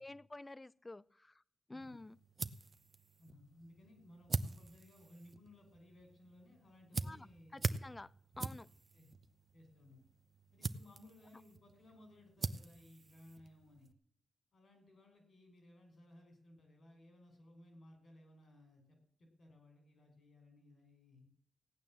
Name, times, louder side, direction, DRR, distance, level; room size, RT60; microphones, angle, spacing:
voice 1, 0.0-1.4 1.7-2.2 7.0-7.3 7.5-8.7, left 2 dB, 25° left, 21 dB, 0.6 m, -50 dB
sound 1, 1.8-13.9, right 4 dB, 50° right, 0.9 m, -44 dB
voice 2, 3.2-7.7 8.9-9.1 9.5-10.0 10.5-13.9 14.5-21.3, left 1 dB, 65° left, 5 dB, 5.6 m, -61 dB
17.0 x 9.1 x 7.6 m, 0.68 s
cardioid pair, 60°, 0 cm